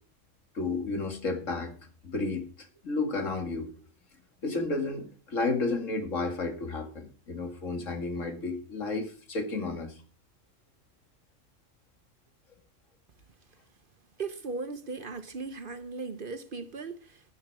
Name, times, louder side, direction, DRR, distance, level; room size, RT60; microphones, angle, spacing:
voice 1, 0.5-1.7 2.0-2.5 2.8-3.7 4.4-9.9, left 3 dB, 80° left, 2.6 m, -32 dB
voice 2, 14.2-17.2, right 4 dB, 45° right, 1.1 m, -37 dB
12.0 x 11.0 x 4.9 m
omnidirectional pair, 1.3 m